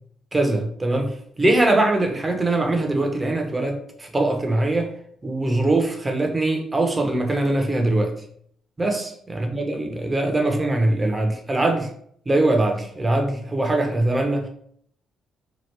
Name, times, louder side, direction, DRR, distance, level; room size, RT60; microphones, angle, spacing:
voice 1, 0.3-4.9 5.2-8.1 8.8-11.9 12.3-14.5, right 2 dB, 20° right, 3 dB, 0.6 m, -22 dB
2.9 x 2.3 x 3.2 m, 0.64 s
cardioid pair, 90°, 0 cm